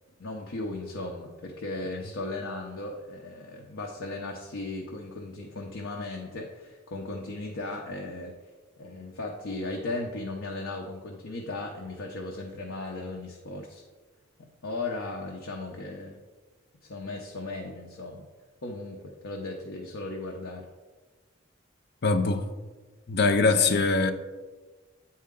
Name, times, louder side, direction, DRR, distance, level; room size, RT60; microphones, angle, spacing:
voice 1, 0.2-8.3 8.8-13.8 14.6-16.2 16.9-18.3 18.6-20.6 23.5-23.8, left 2 dB, 90° left, 0.8 m, -36 dB
voice 2, 22.0-22.4 23.1-24.1, left 3 dB, 55° left, 0.5 m, -22 dB
8.6 x 4.3 x 3.7 m
head